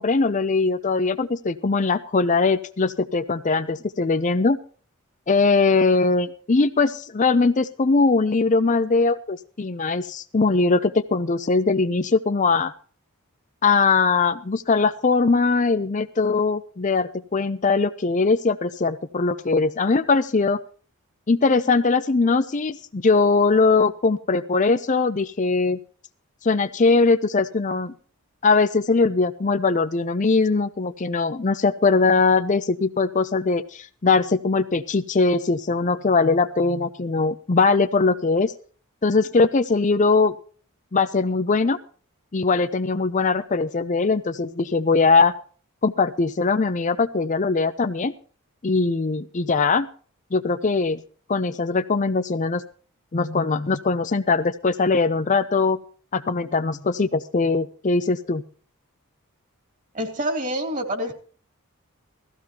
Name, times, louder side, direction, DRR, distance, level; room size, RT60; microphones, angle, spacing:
voice 1, 0.0-4.6 5.3-12.7 13.6-20.6 21.3-25.8 26.4-27.9 28.4-38.5 39.0-40.3 40.9-41.8 42.3-45.3 45.8-48.1 48.6-49.9 50.3-51.0 51.3-52.6 53.1-55.8 56.1-58.4, left 4 dB, 35° left, 11 dB, 0.5 m, -21 dB
voice 2, 59.9-61.1, right 1 dB, 35° right, 5 dB, 2.8 m, -27 dB
17.5 x 15.0 x 2.9 m, 0.43 s
head